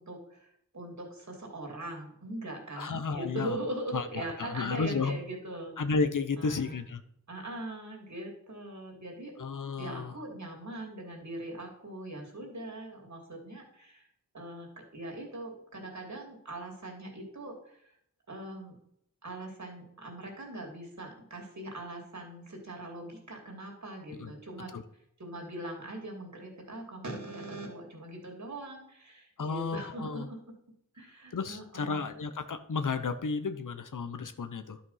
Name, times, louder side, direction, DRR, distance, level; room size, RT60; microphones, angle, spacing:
voice 1, 0.0-5.7 6.4-6.8 7.3-9.3 9.8-14.1 14.3-17.9 18.3-18.7 19.2-24.7 25.2-30.4 30.9-32.0, right 1 dB, 65° right, 0 dB, 2.9 m, -41 dB
voice 2, 2.8-3.6 3.9-5.2 5.8-7.0 9.4-10.1 24.2-24.3 24.7-24.8 29.4-30.3 31.3-34.8, left 4 dB, 75° left, 10 dB, 0.9 m, -32 dB
11.0 x 5.2 x 5.7 m, 0.73 s
wide cardioid pair, 45°, 31 cm